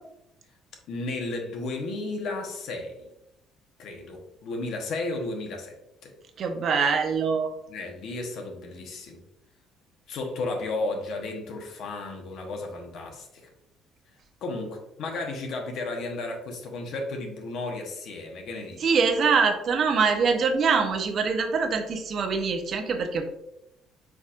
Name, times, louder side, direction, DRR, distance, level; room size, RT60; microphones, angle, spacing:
voice 1, 0.9-3.1 3.8-5.7 6.0-6.2 7.7-9.2 10.1-13.5 14.4-18.9, left 2 dB, 65° left, 2 dB, 1.1 m, -33 dB
voice 2, 6.4-7.5 18.8-23.2, right 5 dB, 50° right, 5 dB, 0.8 m, -24 dB
4.8 x 4.1 x 2.5 m, 0.87 s
cardioid pair, 100°, 0 cm